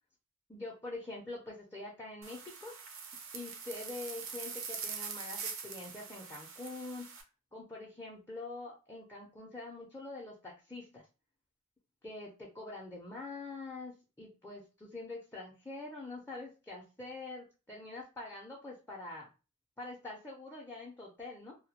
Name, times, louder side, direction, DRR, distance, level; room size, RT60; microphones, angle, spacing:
voice 1, 0.5-2.8 3.3-7.1 7.5-11.1 12.0-19.3 19.8-21.6, left 2 dB, 10° left, -4 dB, 0.5 m, -45 dB
sound 1, 2.2-7.2, right 6 dB, 65° right, 0.5 m, -43 dB
2.2 x 2.0 x 2.8 m, 0.31 s
head